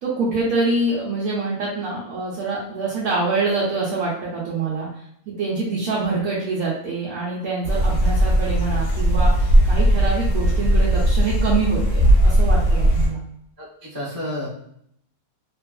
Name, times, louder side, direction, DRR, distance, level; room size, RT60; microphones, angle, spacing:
voice 1, 0.0-4.9 5.3-9.3 9.6-13.2, right 3 dB, 85° right, -7 dB, 1.2 m, -25 dB
sound 1, 7.6-13.1, right 1 dB, 60° left, 0.8 m, -18 dB
voice 2, 13.6-14.5, left 1 dB, 25° right, -7 dB, 0.5 m, -30 dB
2.8 x 2.4 x 2.2 m, 0.69 s
omnidirectional pair, 1.5 m